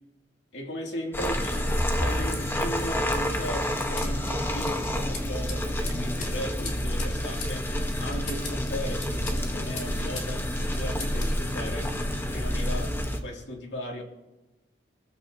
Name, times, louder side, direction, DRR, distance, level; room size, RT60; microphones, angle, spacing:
voice 1, 0.5-11.9 12.3-13.0 13.2-14.0, equal, 75° left, 0 dB, 2.7 m, -37 dB
sound 1, 1.1-13.2, equal, 15° left, 1.1 m, -28 dB
sound 2, 4.0-10.3 10.6-11.4, left 4 dB, 40° left, 3.1 m, -41 dB
24.5 x 14.5 x 2.8 m, 1.0 s
head